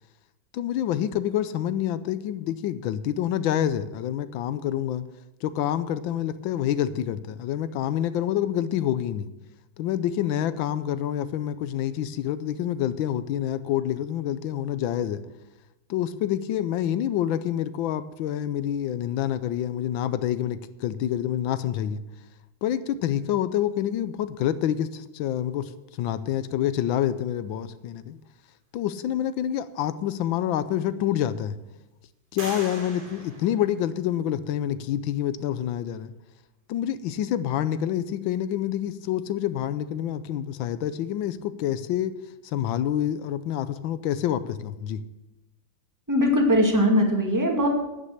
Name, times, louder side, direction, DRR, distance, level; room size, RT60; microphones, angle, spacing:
voice 1, 0.5-5.0 5.4-9.3 9.8-15.2 15.9-22.0 22.6-25.7 26.0-28.2 28.7-31.6 32.3-36.1 36.7-42.1 42.4-45.0, left 11 dB, 80° left, 14 dB, 1.4 m, -27 dB
sound 1, 30.1-30.2 30.8-31.5 32.4-34.3, right 2 dB, 75° right, 3.5 m, -42 dB
voice 2, 46.1-47.7, equal, 10° right, 1 dB, 1.9 m, -20 dB
9.8 x 9.6 x 6.6 m, 1.0 s
omnidirectional pair, 2.2 m